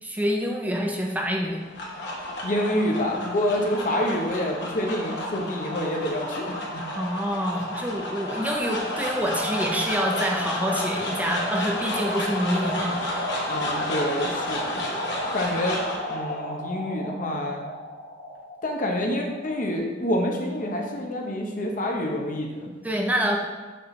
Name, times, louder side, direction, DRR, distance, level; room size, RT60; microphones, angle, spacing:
voice 1, 0.0-1.6 6.9-13.3 15.1-15.2 22.8-23.4, equal, 10° right, 0 dB, 0.6 m, -27 dB
sound 1, 1.4-19.8, left 1 dB, 65° left, 1.7 m, -31 dB
voice 2, 2.4-6.8 13.5-14.8 15.3-15.8 16.1-17.6 18.6-22.7, left 1 dB, 45° left, 1 dB, 1.1 m, -27 dB
6.7 x 4.0 x 5.9 m, 1.3 s
head